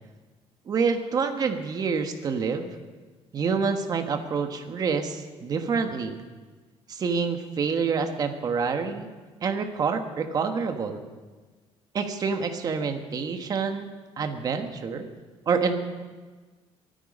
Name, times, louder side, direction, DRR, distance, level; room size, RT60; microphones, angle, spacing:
voice 1, 0.7-2.7 3.3-6.2 6.9-9.1 9.4-11.0 11.9-13.9 14.2-15.1 15.5-15.7, right 5 dB, 35° right, 6 dB, 1.3 m, -27 dB
23.0 x 9.3 x 5.3 m, 1.3 s
cardioid pair, 145°, 11 cm